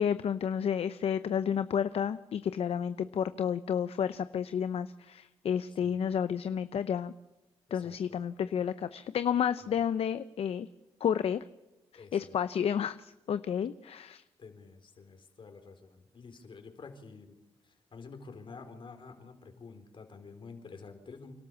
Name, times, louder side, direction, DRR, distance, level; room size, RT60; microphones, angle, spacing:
voice 1, 0.0-7.1 7.7-10.7 11.0-11.4 11.9-14.2, left 8 dB, 70° left, 13 dB, 0.8 m, -31 dB
voice 2, 7.7-8.2 11.9-12.3 14.4-17.4 17.6-21.4, left 4 dB, 50° left, 6 dB, 4.2 m, -49 dB
29.0 x 13.0 x 7.1 m, 0.98 s
cardioid pair, 80°, 11 cm